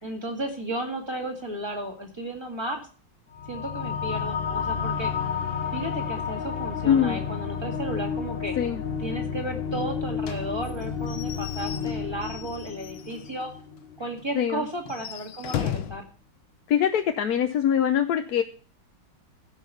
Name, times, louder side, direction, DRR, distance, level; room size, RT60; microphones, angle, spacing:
voice 1, 0.0-2.8 3.5-5.1 5.7-8.6 9.0-13.5 14.0-16.1, right 1 dB, 15° right, 2 dB, 2.0 m, -34 dB
sound 1, 3.3-14.2, left 6 dB, 35° left, 1.2 m, -31 dB
voice 2, 6.8-7.2 8.6-8.8 14.4-14.6 16.7-18.4, left 9 dB, 65° left, 6 dB, 1.1 m, -23 dB
Slam / Squeak / Wood, 10.2-13.4 13.8-13.9 14.2-14.3 14.8-16.1, left 10 dB, 90° left, 1.6 m, -36 dB
14.5 x 5.7 x 5.5 m, 0.40 s
omnidirectional pair, 2.1 m